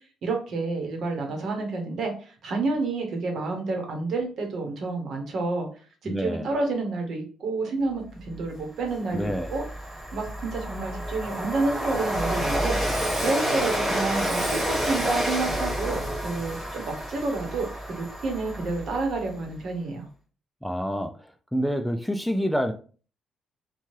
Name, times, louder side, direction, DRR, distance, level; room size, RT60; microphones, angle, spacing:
voice 1, 0.2-5.7 6.0-9.6 10.1-12.8 13.2-17.7 18.0-20.1, right 3 dB, 65° right, 2 dB, 1.0 m, -29 dB
voice 2, 6.1-6.5 9.1-9.5 20.6-21.1 21.5-22.7, equal, ahead, 6 dB, 0.3 m, -27 dB
Train, 8.4-8.5 8.8-19.3, equal, 15° right, 1.0 m, -29 dB
2.7 x 2.3 x 3.1 m, 0.38 s
cardioid pair, 90°, 0 cm